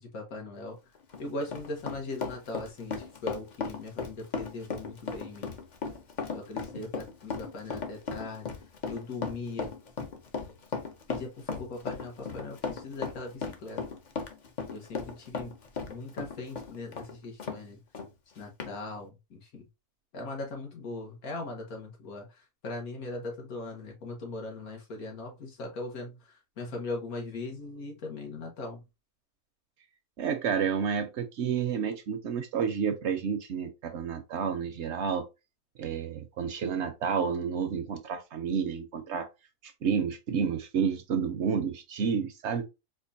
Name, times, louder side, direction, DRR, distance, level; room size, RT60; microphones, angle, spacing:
voice 1, 0.1-0.8 1.2-5.5 6.3-8.5 8.9-9.7 11.1-13.8 14.7-15.5 15.9-17.8 18.4-19.6 20.1-22.3 22.6-26.2 26.6-28.8, left 2 dB, 90° left, 1.6 m, -39 dB
Run, 0.9-17.6 17.9-18.1 18.6-18.7, left 5 dB, 50° left, 0.5 m, -36 dB
voice 2, 30.2-35.2 35.8-39.3 39.8-42.6, right 6 dB, 65° right, 0.7 m, -30 dB
4.4 x 2.4 x 2.6 m
omnidirectional pair, 1.5 m